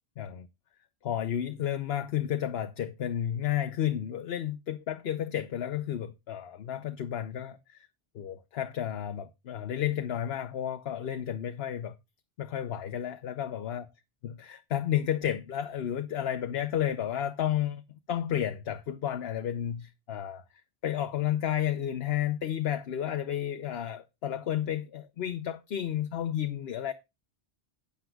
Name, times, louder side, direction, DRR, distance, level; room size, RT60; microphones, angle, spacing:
voice 1, 0.2-0.5 1.0-7.9 8.1-12.0 12.4-13.8 14.5-17.8 18.1-20.4 20.8-26.9, left 10 dB, 70° left, 1.0 m, -32 dB
14.0 x 9.5 x 2.3 m
omnidirectional pair, 1.1 m